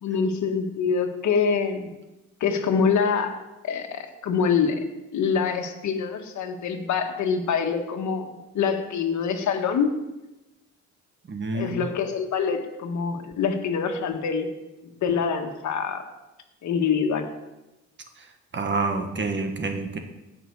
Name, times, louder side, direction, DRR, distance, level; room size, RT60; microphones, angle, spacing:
voice 1, 0.0-1.9 2.4-3.4 3.6-4.8 5.1-9.9 11.5-14.5 15.0-16.0 16.6-17.3, left 6 dB, 70° left, 5 dB, 1.6 m, -25 dB
voice 2, 11.3-11.8 18.5-20.0, right 3 dB, 40° right, 5 dB, 1.6 m, -28 dB
17.0 x 6.1 x 4.7 m, 1.0 s
cardioid pair, 90°, 30 cm